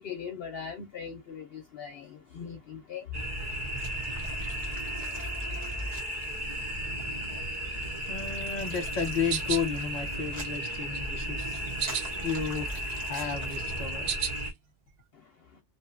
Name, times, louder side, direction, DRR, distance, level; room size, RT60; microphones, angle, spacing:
voice 1, 0.0-3.1 15.5-15.6, left 7 dB, 60° left, 0.9 m, -40 dB
sound 1, 3.1-14.5, equal, 35° right, 1.0 m, -34 dB
voice 2, 8.1-14.1, left 6 dB, 35° left, 1.0 m, -33 dB
sound 2, 8.6-9.7 10.2-11.0 11.4-12.5 12.8-14.5, right 8 dB, 65° right, 0.7 m, -35 dB
2.9 x 2.3 x 2.5 m
omnidirectional pair, 1.2 m